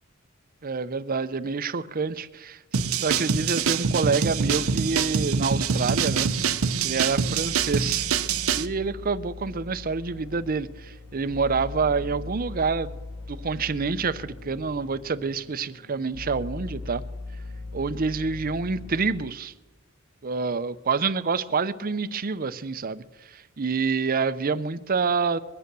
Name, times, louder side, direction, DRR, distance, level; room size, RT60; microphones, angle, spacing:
voice 1, 0.6-2.6 3.0-6.3 6.8-8.1 8.5-13.0 13.3-17.0 17.7-19.5 20.2-25.4, right 4 dB, 45° right, 0.6 m, -27 dB
sound 1, 2.7-8.7, right 6 dB, 75° right, 0.7 m, -25 dB
sound 2, 4.3-19.3, left 3 dB, 80° left, 1.0 m, -40 dB
22.5 x 9.1 x 6.9 m
head